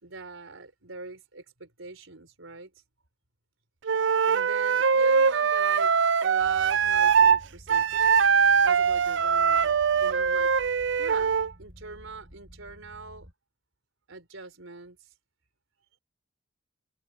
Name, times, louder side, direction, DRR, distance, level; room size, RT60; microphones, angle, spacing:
voice 1, 0.0-2.7 4.3-5.9 6.2-10.5 11.0-13.3 14.1-15.0, right 3 dB, 85° right, 4.2 m, -42 dB
Wind instrument woodwind instrument, 3.8-7.4 7.7-11.5, right 6 dB, 60° right, 0.4 m, -22 dB
sound 1, 6.4-13.3, equal, 45° right, 6.4 m, -51 dB
head